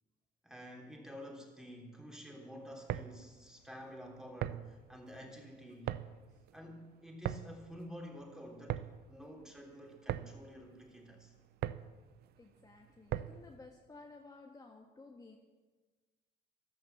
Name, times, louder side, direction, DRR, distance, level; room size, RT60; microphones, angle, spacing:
voice 1, 0.4-6.0 6.5-11.3, equal, 5° right, 0 dB, 3.4 m, -50 dB
sound 1, 2.7-13.6, right 12 dB, 70° right, 0.6 m, -42 dB
voice 2, 12.4-15.4, left 3 dB, 20° left, 1 dB, 1.6 m, -55 dB
13.5 x 12.0 x 7.3 m, 1.3 s
cardioid pair, 110°, 17 cm